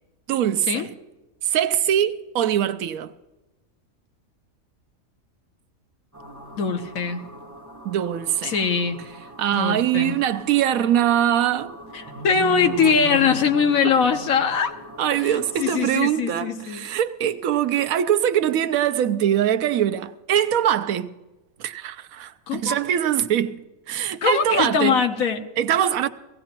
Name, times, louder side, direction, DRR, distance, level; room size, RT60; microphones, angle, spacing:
voice 1, 0.3-0.9 1.4-3.1 7.8-8.6 9.4-11.7 15.0-21.1 21.6-23.6 23.9-25.0 25.6-26.1, right 10 dB, 90° right, 1.1 m, -22 dB
sound 1, 6.1-15.7, right 1 dB, 10° right, 4.3 m, -39 dB
voice 2, 6.5-7.2 8.4-9.0 9.5-10.1 12.2-14.7 15.2-16.8 22.5-22.8 24.2-25.4, left 6 dB, 85° left, 1.4 m, -22 dB
18.0 x 16.5 x 3.0 m
omnidirectional pair, 1.4 m